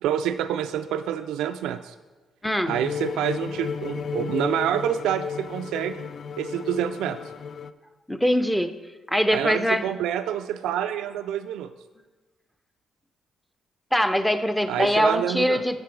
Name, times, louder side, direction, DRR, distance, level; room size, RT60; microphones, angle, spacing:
voice 1, 0.0-1.9 2.7-6.1 6.4-7.2 9.3-11.7 14.7-15.6, right 10 dB, 90° right, 9 dB, 0.3 m, -27 dB
sound 1, 2.7-7.7, left 6 dB, 55° left, 0.3 m, -33 dB
voice 2, 8.1-8.7 9.1-9.8 13.9-15.8, equal, 5° left, 9 dB, 0.6 m, -22 dB
8.4 x 6.9 x 4.6 m, 1.2 s
cardioid pair, 90°, 0 cm